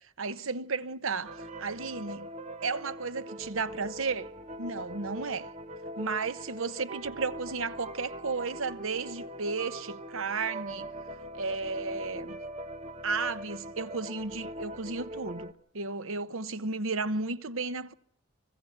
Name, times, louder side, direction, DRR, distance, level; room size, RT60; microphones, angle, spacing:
voice 1, 0.2-2.3 2.6-4.3 4.6-5.5 6.0-10.9 11.3-12.4 13.0-17.9, right 4 dB, 80° right, 0.9 m, -33 dB
sound 1, 1.2-15.5, right 1 dB, 30° right, 1.0 m, -41 dB
25.0 x 15.0 x 8.0 m
head